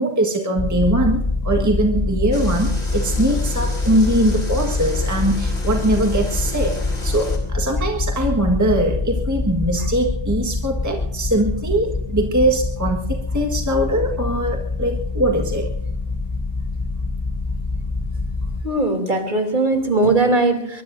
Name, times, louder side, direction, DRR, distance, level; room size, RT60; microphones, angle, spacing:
voice 1, 0.0-15.7, right 1 dB, 15° right, 1 dB, 1.5 m, -21 dB
sound 1, 0.6-18.6, left 3 dB, 25° left, 0.8 m, -25 dB
sound 2, 2.3-7.4, left 1 dB, 60° left, 4.6 m, -35 dB
voice 2, 18.6-20.8, right 2 dB, 45° right, 4 dB, 3.1 m, -19 dB
24.0 x 22.0 x 2.7 m, 0.79 s
omnidirectional pair, 1.2 m